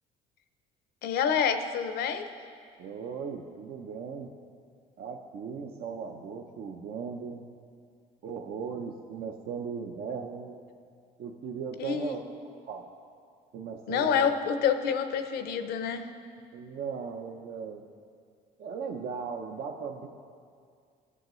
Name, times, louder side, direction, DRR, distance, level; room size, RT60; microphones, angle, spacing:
voice 1, 1.0-2.3 11.8-12.2 13.9-16.1, left 7 dB, 70° left, 9 dB, 0.7 m, -27 dB
voice 2, 2.8-4.3 5.0-7.4 8.2-10.5 11.2-12.8 13.5-14.3 16.5-17.8 18.6-20.1, right 6 dB, 60° right, 2 dB, 0.6 m, -37 dB
15.5 x 7.8 x 3.1 m, 2.2 s
cardioid pair, 110°, 17 cm